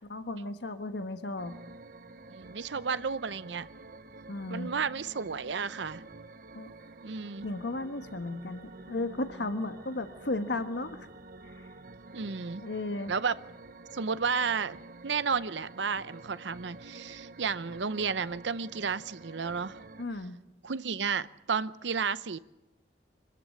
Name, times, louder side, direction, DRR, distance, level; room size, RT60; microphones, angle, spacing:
voice 1, 0.1-1.6 4.3-4.7 6.5-6.7 7.4-11.0 11.4-11.7 12.6-13.1 20.0-20.4, left 2 dB, 80° left, 9 dB, 1.3 m, -35 dB
sound 1, 1.4-20.0, right 2 dB, 50° right, 0.9 m, -49 dB
voice 2, 2.3-3.7 4.5-6.0 7.0-7.4 12.1-12.6 13.1-13.4 13.9-19.8 20.6-22.4, right 5 dB, 85° right, 16 dB, 0.7 m, -32 dB
25.0 x 14.0 x 8.4 m, 0.99 s
head